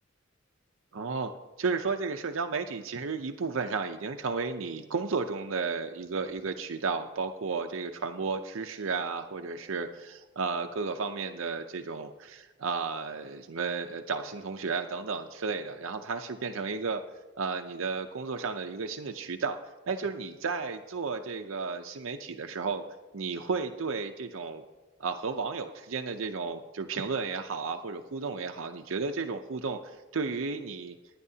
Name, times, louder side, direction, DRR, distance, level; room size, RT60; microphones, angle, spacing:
voice 1, 0.9-1.3 1.6-17.0 17.4-19.6 19.9-22.8 23.1-24.6 25.0-31.0, right 4 dB, 90° right, 5 dB, 0.6 m, -33 dB
21.5 x 9.7 x 2.8 m, 1.1 s
head